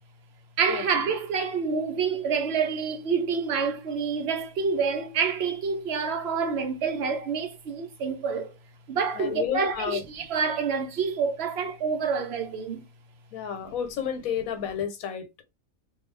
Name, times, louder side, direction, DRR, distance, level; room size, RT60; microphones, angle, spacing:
voice 1, 0.6-8.5 8.9-12.9, right 5 dB, 60° right, 0.7 m, -27 dB
voice 2, 9.1-10.0 13.3-15.4, left 8 dB, 80° left, 1.1 m, -31 dB
2.4 x 2.3 x 3.1 m
omnidirectional pair, 1.5 m